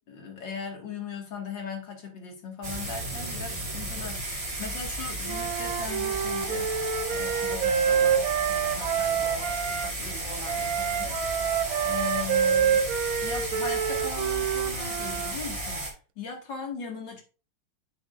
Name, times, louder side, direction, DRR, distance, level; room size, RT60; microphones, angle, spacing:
voice 1, 0.0-6.7 7.1-11.6 11.8-12.9 13.2-15.8 16.2-17.2, left 5 dB, 80° left, 1 dB, 2.6 m, -39 dB
sound 1, 2.6-15.9, right 2 dB, 20° right, 1.7 m, -34 dB
Wind instrument woodwind instrument, 5.3-9.9 10.5-15.3, right 8 dB, 65° right, 0.9 m, -27 dB
10.5 x 6.2 x 2.5 m, 0.34 s
omnidirectional pair, 2.0 m